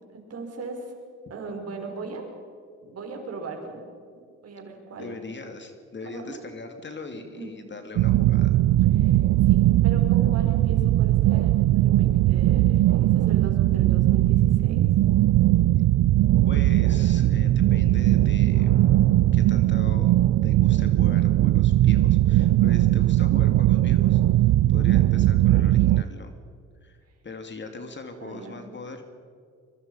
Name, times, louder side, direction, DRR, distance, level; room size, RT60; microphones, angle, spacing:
voice 1, 0.1-0.9 1.3-2.3 2.8-3.8 4.4-5.2 6.0-6.4 7.3-7.5 9.0-14.9 17.1-17.3 22.6-22.9 23.2-23.4 28.2-28.6, right 3 dB, 55° right, 3 dB, 5.3 m, -38 dB
voice 2, 5.0-8.6 15.8-16.0 16.5-18.7 19.3-24.2 24.7-26.4 26.8-29.0, left 3 dB, 40° left, 6 dB, 2.5 m, -40 dB
sound 1, 8.0-26.0, right 15 dB, 70° right, 0.5 m, -19 dB
sound 2, 18.5-20.8, left 1 dB, 65° left, 7.9 m, -48 dB
24.0 x 23.0 x 5.5 m, 2.3 s
cardioid pair, 90°, 30 cm